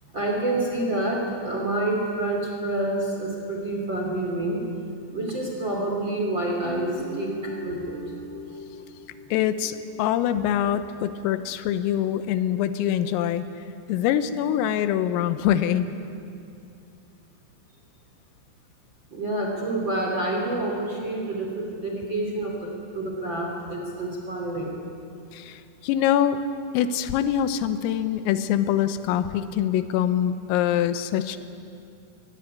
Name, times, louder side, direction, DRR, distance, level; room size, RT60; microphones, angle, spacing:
voice 1, 0.1-4.6 5.1-8.1 19.1-24.8, right 2 dB, 30° right, 0 dB, 2.7 m, -28 dB
Guitar, 6.6-9.9, left 1 dB, 25° left, 5.1 m, -37 dB
voice 2, 9.3-13.5 13.9-15.9 25.3-26.4 26.7-31.4, left 10 dB, 90° left, 12 dB, 3.5 m, -24 dB
22.0 x 19.0 x 9.8 m, 2.5 s
omnidirectional pair, 6.0 m